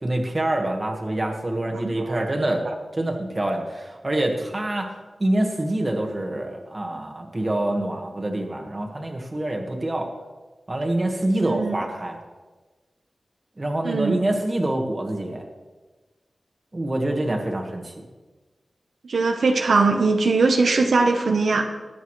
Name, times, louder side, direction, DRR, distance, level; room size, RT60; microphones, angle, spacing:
voice 1, 0.0-2.7 2.9-4.9 5.2-10.1 10.7-12.2 13.6-15.4 16.7-18.0, right 1 dB, 30° right, 2 dB, 1.6 m, -26 dB
voice 2, 1.8-2.3 2.6-2.7 11.4-11.8 13.8-14.2 19.0-21.7, right 3 dB, 80° right, 3 dB, 0.9 m, -21 dB
20.0 x 8.2 x 3.2 m, 1.3 s
wide cardioid pair, 120°, 0 cm